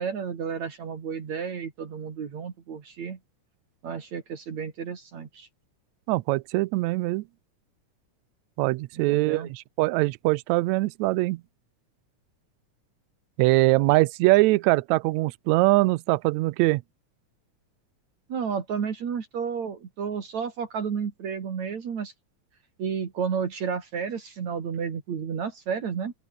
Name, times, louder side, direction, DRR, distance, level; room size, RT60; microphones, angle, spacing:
voice 1, 0.0-3.2 3.8-5.5 8.9-9.5 18.3-22.1 22.8-26.1, right 6 dB, 65° right, 3.9 m, -32 dB
voice 2, 6.1-7.2 8.6-11.4 13.4-16.8, right 20 dB, 80° right, 1.8 m, -22 dB
open air
omnidirectional pair, 3.5 m